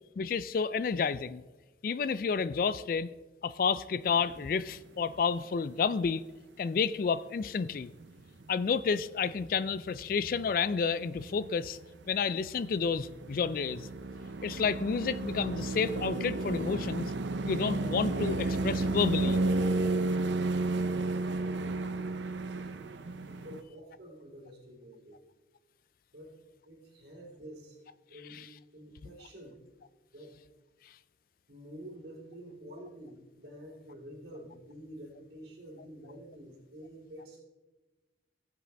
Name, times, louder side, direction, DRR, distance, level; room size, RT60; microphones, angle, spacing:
voice 1, 0.2-1.4 1.8-3.1 3.4-6.2 6.6-7.9 8.5-11.8 12.1-13.9 14.4-17.1 17.5-19.4 28.3-28.4, left 5 dB, 50° left, 0.3 m, -30 dB
sound 1, 4.1-4.4 4.7-5.0 5.4-5.5 7.7-7.8 8.0-12.1 12.4-23.6, right 2 dB, 80° right, 0.6 m, -33 dB
voice 2, 20.8-22.7 23.3-25.2 26.1-26.3 26.6-29.6 30.1-30.3 31.5-37.4, equal, 60° right, 2.9 m, -49 dB
16.5 x 7.7 x 3.4 m
head